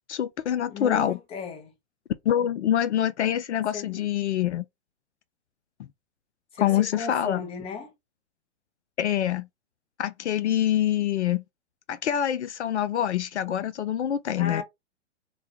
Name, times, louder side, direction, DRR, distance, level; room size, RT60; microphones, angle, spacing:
voice 1, 0.1-1.2 2.3-4.6 6.6-7.4 9.0-9.5 10.0-11.4 11.9-14.6, left 10 dB, 70° left, 0.5 m, -25 dB
voice 2, 0.7-1.7 2.4-2.5 3.7-4.0 6.5-7.9 14.3-14.6, left 6 dB, 15° left, 0.7 m, -35 dB
2.9 x 2.2 x 2.9 m
figure-of-eight pair, 120°, 36 cm